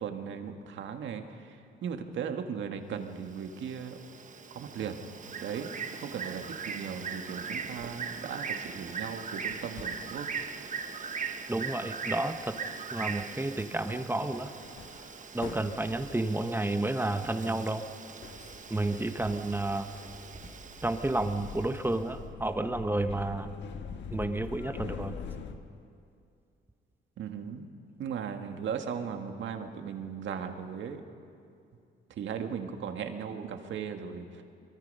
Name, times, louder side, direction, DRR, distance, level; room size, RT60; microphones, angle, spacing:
voice 1, 0.0-1.6 1.8-4.0 4.5-5.0 5.4-5.7 6.0-10.3 27.2-27.6 28.0-31.0 32.1-34.4, right 7 dB, 70° right, 5 dB, 1.8 m, -37 dB
Bird, 3.2-22.0, right 5 dB, 40° right, 1.3 m, -40 dB
sound 1, 7.2-8.0 8.4-8.8 9.5-10.3 11.5-11.7 12.1-12.7 13.0-13.3 13.6-17.7 18.2-25.6, left 6 dB, 65° left, 1.5 m, -45 dB
voice 2, 11.5-12.6 12.9-14.5 15.3-17.8 18.7-19.9 20.8-23.5 24.1-25.2, right 2 dB, 10° right, 8 dB, 1.2 m, -31 dB
23.0 x 22.5 x 5.6 m, 2.5 s
cardioid pair, 90°, 20 cm